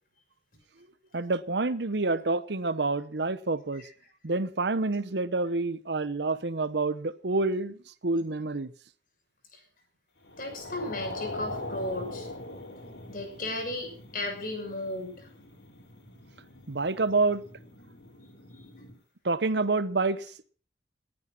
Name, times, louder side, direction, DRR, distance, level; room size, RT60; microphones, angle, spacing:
voice 1, 1.1-3.8 4.2-8.7 16.7-17.4 19.2-20.4, right 3 dB, 75° right, 0.9 m, -28 dB
sound 1, 10.2-19.0, left 1 dB, 85° left, 5.0 m, -42 dB
voice 2, 10.4-12.3 13.1-15.1, left 2 dB, 50° left, 6.0 m, -35 dB
18.5 x 9.3 x 5.9 m
head